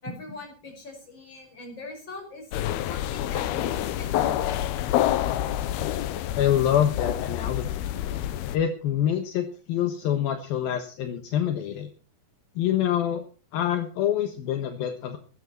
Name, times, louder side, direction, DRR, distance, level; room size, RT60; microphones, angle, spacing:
voice 1, 0.0-2.4 2.8-4.7, left 2 dB, 30° left, 2 dB, 6.1 m, -41 dB
sound 1, 2.5-8.6, left 12 dB, 90° left, 2.9 m, -27 dB
voice 2, 6.3-7.8 8.5-11.9 12.6-13.2 13.5-15.2, left 10 dB, 70° left, 6 dB, 3.0 m, -26 dB
18.0 x 12.5 x 4.4 m, 0.37 s
omnidirectional pair, 4.5 m